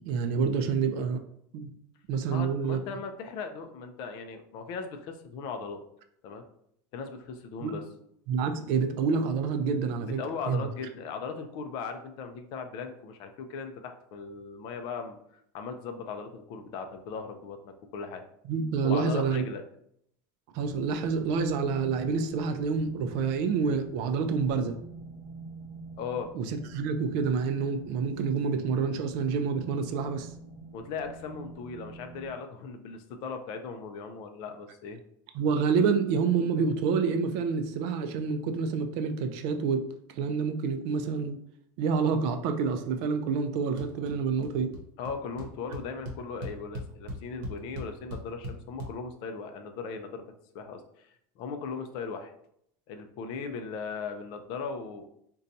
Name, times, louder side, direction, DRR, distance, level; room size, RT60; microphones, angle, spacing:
voice 1, 0.1-1.2 1.5-1.7 2.1-2.8 7.6-7.7 8.3-10.2 10.5-10.7 18.5-19.4 20.5-24.8 26.3-30.3 35.3-39.9 40.2-41.4 41.8-44.7, right 5 dB, 50° right, 7 dB, 0.4 m, -28 dB
voice 2, 2.3-5.8 6.2-6.4 6.9-7.8 10.2-15.2 15.5-18.2 18.8-19.6 26.0-26.3 30.7-35.0 45.0-50.2 50.5-52.3 52.9-55.1, left 5 dB, 45° left, 7 dB, 0.4 m, -38 dB
sound 1, 20.6-32.3, right 3 dB, 10° right, 1.4 m, -47 dB
sound 2, 43.8-44.1 44.4-44.8 45.1-45.2 45.4-48.9, equal, 70° right, 0.8 m, -38 dB
3.9 x 2.2 x 2.6 m, 0.70 s
cardioid pair, 170°, 11 cm